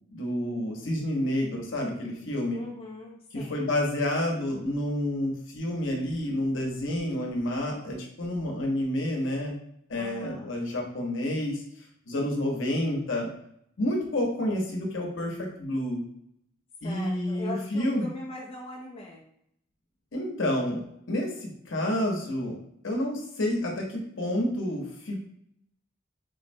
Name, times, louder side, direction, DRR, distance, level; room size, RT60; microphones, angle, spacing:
voice 1, 0.1-2.6 3.3-9.6 9.9-11.6 12.1-13.3 13.8-16.0 16.8-18.1 20.1-20.8 21.1-22.6 22.8-25.2, left 1 dB, 70° left, 0 dB, 0.8 m, -29 dB
voice 2, 2.5-3.7 10.0-10.5 16.8-19.2, left 2 dB, 30° left, -3 dB, 0.4 m, -41 dB
3.6 x 2.1 x 2.6 m, 0.72 s
head